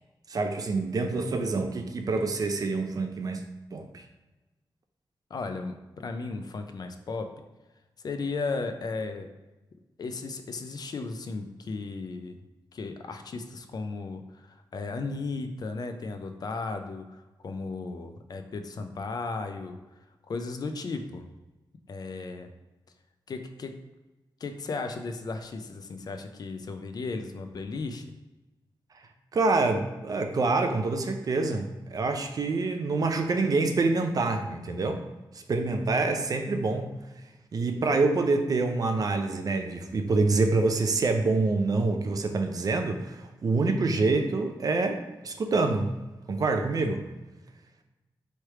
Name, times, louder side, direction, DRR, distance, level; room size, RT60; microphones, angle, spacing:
voice 1, 0.3-3.4 3.7-4.0 29.3-35.0 35.3-37.0 37.5-45.9 46.3-47.0, right 3 dB, 45° right, 5 dB, 0.4 m, -26 dB
voice 2, 5.3-7.3 8.0-9.3 10.0-12.4 12.7-14.4 14.7-17.0 17.4-19.8 20.3-21.3 21.9-22.5 23.3-23.7 24.4-28.0, left 3 dB, 50° left, 7 dB, 0.4 m, -35 dB
3.2 x 3.0 x 4.6 m, 1.1 s
wide cardioid pair, 165°, 8 cm